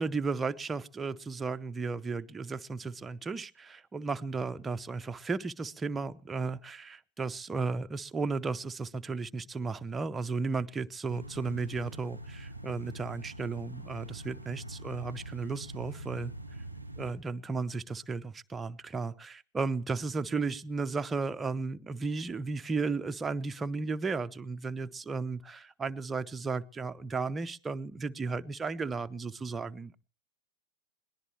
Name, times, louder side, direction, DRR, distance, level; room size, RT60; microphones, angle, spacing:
voice 1, 0.0-16.3 17.0-30.0, right 4 dB, 15° right, 11 dB, 0.7 m, -34 dB
sound 1, 11.1-17.1, right 1 dB, 90° left, 4.0 m, -44 dB
22.0 x 18.5 x 3.1 m, 0.40 s
figure-of-eight pair, 90°, 0 cm